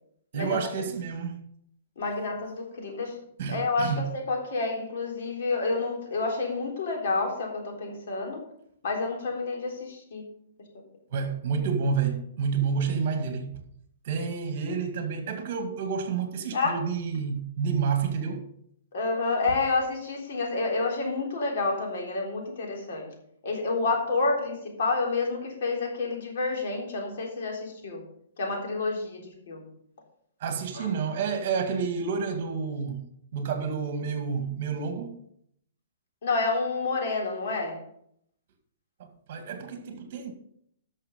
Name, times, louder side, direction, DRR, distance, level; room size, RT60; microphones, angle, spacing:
voice 1, 0.3-1.4 3.4-4.0 11.1-13.5 14.0-18.5 30.4-33.1 33.3-35.2 39.0-40.3, right 6 dB, 50° right, 2.0 m, -29 dB
voice 2, 2.0-3.2 3.5-8.4 8.8-10.2 16.5-16.8 18.9-23.1 23.4-28.0 28.4-29.7 30.7-30.9 36.2-37.8, left 3 dB, 60° left, 3.6 m, -29 dB
12.5 x 6.4 x 5.2 m
hypercardioid pair, 160°, 0 cm